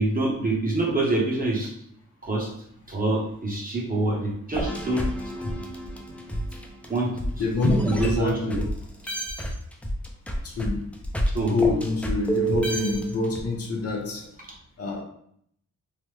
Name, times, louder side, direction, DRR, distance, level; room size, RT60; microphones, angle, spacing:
voice 1, 0.0-1.7 2.2-2.5 2.9-5.0 6.9-7.2 7.8-8.6 11.3-11.5, right 2 dB, 30° right, -3 dB, 0.7 m, -25 dB
sound 1, 4.5-8.7 9.1-13.4, right 1 dB, 5° left, 0.3 m, -29 dB
voice 2, 7.4-8.7 10.4-10.9 11.3-14.3 14.8-15.0, left 3 dB, 55° left, 0 dB, 0.7 m, -26 dB
3.2 x 2.0 x 3.1 m, 0.66 s
wide cardioid pair, 150°, 30 cm